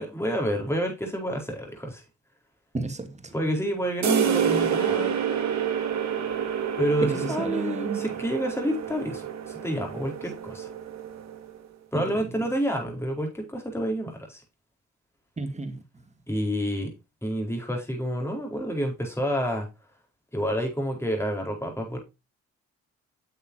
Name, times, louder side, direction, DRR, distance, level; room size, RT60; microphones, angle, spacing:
voice 1, 0.0-2.0 3.3-5.2 6.8-10.7 11.9-14.4 16.3-16.9 17.2-19.7 20.3-22.0, equal, 10° left, 4.5 m, -29 dB
voice 2, 2.7-3.3 7.0-8.2 11.9-12.4 15.4-15.8, right 3 dB, 20° right, 2.1 m, -32 dB
sound 1, 4.0-11.6, right 8 dB, 60° right, 1.9 m, -28 dB
9.4 x 6.8 x 2.8 m
supercardioid pair, 65°, 30 cm